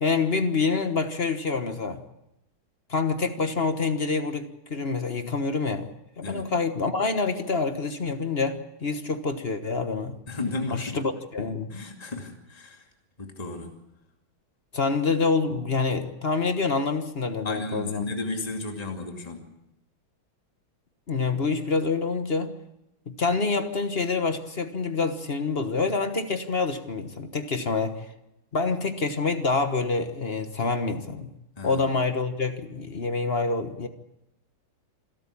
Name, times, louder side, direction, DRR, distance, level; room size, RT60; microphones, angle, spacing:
voice 1, 0.0-2.0 2.9-5.9 6.2-10.2 10.7-11.7 14.7-18.1 21.1-22.5 23.1-28.0 28.5-31.3 31.6-33.9, left 4 dB, 35° left, 8 dB, 1.2 m, -27 dB
voice 2, 6.2-6.5 10.3-11.0 11.7-12.9 13.2-13.8 17.4-19.5 27.6-27.7 31.6-31.9, left 2 dB, 20° left, 3 dB, 2.6 m, -34 dB
27.0 x 13.0 x 8.5 m, 0.88 s
omnidirectional pair, 2.2 m